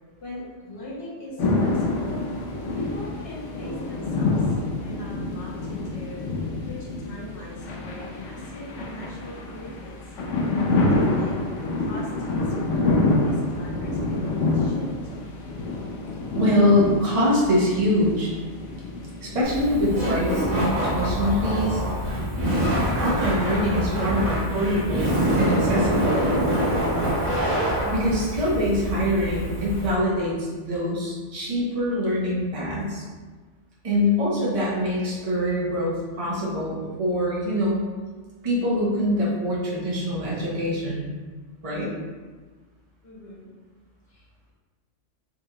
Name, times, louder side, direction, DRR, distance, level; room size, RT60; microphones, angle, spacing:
voice 1, 0.2-2.2 2.7-4.3 4.8-9.9 10.9-11.4 11.8-14.9 43.0-43.5 44.1-44.2, left 1 dB, 55° left, -6 dB, 1.3 m, -41 dB
sound 1, 1.4-20.2, left 2 dB, 80° left, 1.0 m, -27 dB
voice 2, 16.3-18.3 19.2-21.8 23.0-26.3 27.9-33.0 33.8-37.8 38.4-41.1 41.6-41.9, equal, 30° right, -6 dB, 1.0 m, -24 dB
Laughter, 19.4-29.9, equal, 85° right, 1.5 m, -25 dB
3.8 x 3.3 x 2.8 m, 1.4 s
omnidirectional pair, 1.3 m